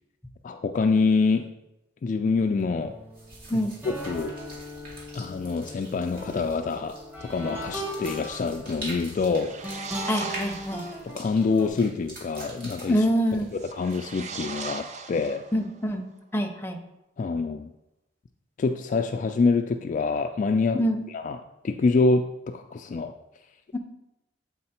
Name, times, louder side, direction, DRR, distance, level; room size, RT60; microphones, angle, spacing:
voice 1, 0.4-1.5 2.0-3.0 3.5-4.3 5.1-9.5 11.0-13.1 13.5-15.4 17.2-17.7 18.6-20.8 21.1-21.4 21.6-23.1, left 4 dB, 45° left, 5 dB, 0.3 m, -26 dB
sound 1, 2.3-11.7, equal, 10° right, 1.0 m, -39 dB
sound 2, 3.1-14.3, right 1 dB, 60° right, 2.1 m, -44 dB
sound 3, 9.1-11.1 13.5-15.8, right 4 dB, 40° right, 0.5 m, -39 dB
voice 2, 10.1-10.8 12.9-13.5 15.5-16.1 16.3-16.8 20.7-21.0 23.7-23.8, equal, 15° left, 4 dB, 0.7 m, -25 dB
7.8 x 4.0 x 4.3 m, 0.90 s
head